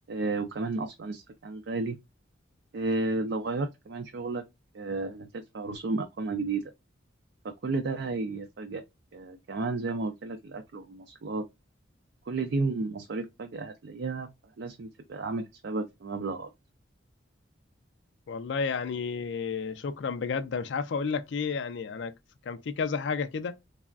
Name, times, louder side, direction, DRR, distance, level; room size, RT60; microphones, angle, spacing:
voice 1, 0.1-2.0 2.7-4.4 4.7-6.6 7.4-8.8 9.1-11.4 12.3-14.3 14.6-16.5, right 3 dB, 60° right, 0.4 m, -32 dB
voice 2, 18.3-22.1 22.5-23.6, left 5 dB, 65° left, 0.4 m, -31 dB
3.3 x 2.0 x 2.3 m
head